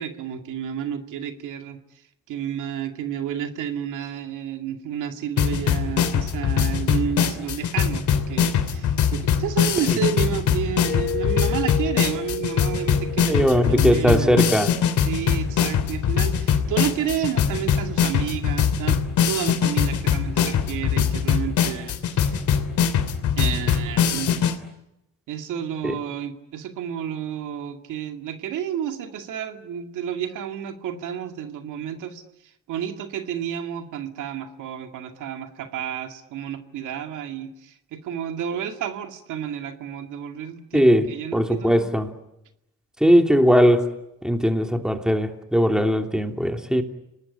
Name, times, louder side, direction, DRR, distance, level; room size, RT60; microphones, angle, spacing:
voice 1, 0.0-1.8 2.3-14.5 15.0-22.4 23.4-24.5 25.3-32.2 32.7-41.9, right 9 dB, 85° right, 2.3 m, -31 dB
sound 1, 5.4-24.5, left 8 dB, 70° left, 3.1 m, -22 dB
Mallet percussion, 10.8-15.5, left 6 dB, 50° left, 4.8 m, -33 dB
voice 2, 13.3-14.7 25.8-25.9 40.7-41.1 41.3-42.1 43.0-43.9 44.2-46.8, equal, ahead, 3.0 m, -19 dB
29.5 x 19.5 x 9.9 m
cardioid pair, 90°, 30 cm